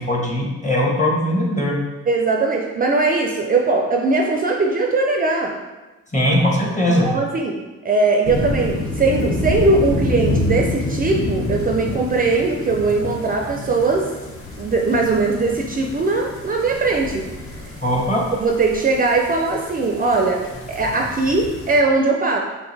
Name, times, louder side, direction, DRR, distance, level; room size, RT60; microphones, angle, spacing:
voice 1, 0.0-1.7 6.1-7.1 17.8-18.2, left 1 dB, 25° left, -2 dB, 1.2 m, -19 dB
voice 2, 2.1-5.6 6.9-14.1 14.6-17.3 18.4-22.4, right 3 dB, 30° right, 1 dB, 0.4 m, -20 dB
sound 1, 8.2-21.8, left 1 dB, 45° left, 1.1 m, -28 dB
5.6 x 2.6 x 3.3 m, 1.2 s
cardioid pair, 90°, 30 cm